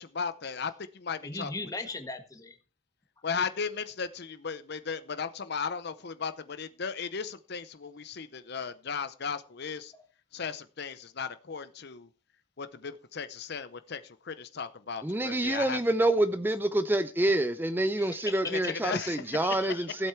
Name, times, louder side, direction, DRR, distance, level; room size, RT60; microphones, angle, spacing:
voice 1, 0.0-1.5 3.2-9.9 10.3-12.1 12.6-15.8 18.4-19.9, left 5 dB, 55° left, 0.7 m, -36 dB
voice 2, 1.2-2.6 9.9-10.0 18.0-18.8, left 3 dB, 15° left, 1.6 m, -38 dB
voice 3, 15.0-20.1, right 1 dB, 10° right, 0.5 m, -27 dB
15.5 x 8.2 x 4.5 m
head